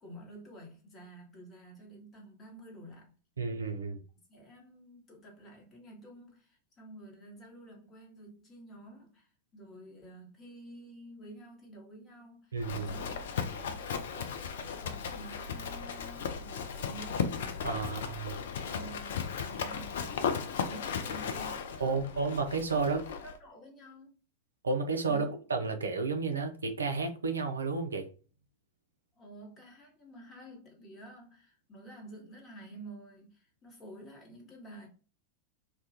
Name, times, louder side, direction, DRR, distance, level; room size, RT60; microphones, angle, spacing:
voice 1, 0.0-3.1 4.3-18.1 18.7-20.2 20.5-22.2 22.7-24.2 29.2-34.9, right 1 dB, 25° left, 1.0 m, -50 dB
voice 2, 3.4-4.0 12.5-13.0 17.6-18.4 21.8-23.0 24.6-28.1, right 4 dB, 75° right, 0.3 m, -32 dB
Livestock farm animals working animals, 12.6-23.4, left 6 dB, 60° left, 0.3 m, -36 dB
2.2 x 2.1 x 2.7 m
figure-of-eight pair, 90°, 0 cm